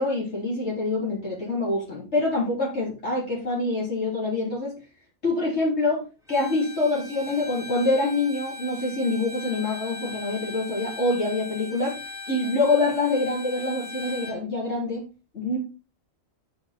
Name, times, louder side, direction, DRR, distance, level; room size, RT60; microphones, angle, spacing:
voice 1, 0.0-4.7 5.2-6.0 6.3-12.0 12.3-15.0 15.3-15.6, left 2 dB, 55° left, -5 dB, 3.7 m, -25 dB
Bowed string instrument, 6.3-14.4, left 3 dB, 5° right, 1.8 m, -39 dB
12.5 x 5.0 x 4.2 m, 0.31 s
omnidirectional pair, 1.4 m